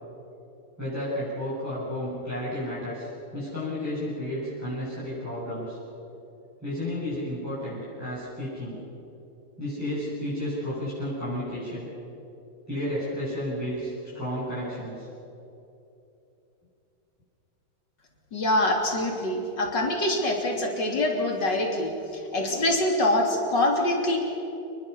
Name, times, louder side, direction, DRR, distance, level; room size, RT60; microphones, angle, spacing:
voice 1, 0.8-5.8 6.6-8.8 9.6-11.9 12.7-15.1, left 1 dB, 5° right, -11 dB, 7.6 m, -32 dB
voice 2, 18.3-21.9 22.3-24.2, left 1 dB, 60° left, 1 dB, 3.9 m, -24 dB
28.5 x 21.5 x 7.0 m, 2.9 s
omnidirectional pair, 2.2 m